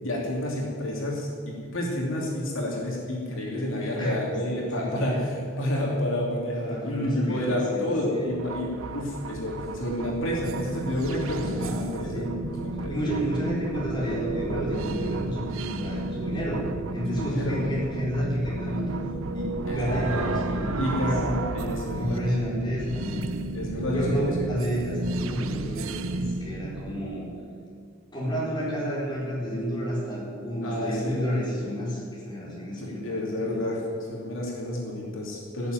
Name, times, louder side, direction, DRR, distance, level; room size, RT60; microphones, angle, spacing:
voice 1, 0.0-13.1 17.1-17.6 19.7-20.3 20.8-22.2 23.5-24.4 25.4-25.6 30.6-31.2 32.8-33.8 34.1-35.7, left 1 dB, 75° left, -3 dB, 2.9 m, -30 dB
voice 2, 4.0-5.2 6.6-8.3 11.4-12.3 12.9-16.7 16.9-19.0 19.3-21.1 21.9-23.3 23.9-27.3 28.1-33.2 33.4-33.7, equal, 20° left, -6 dB, 4.6 m, -31 dB
sound 1, 8.3-27.2, right 2 dB, 80° right, 0.7 m, -32 dB
17.0 x 7.4 x 9.2 m, 2.2 s
head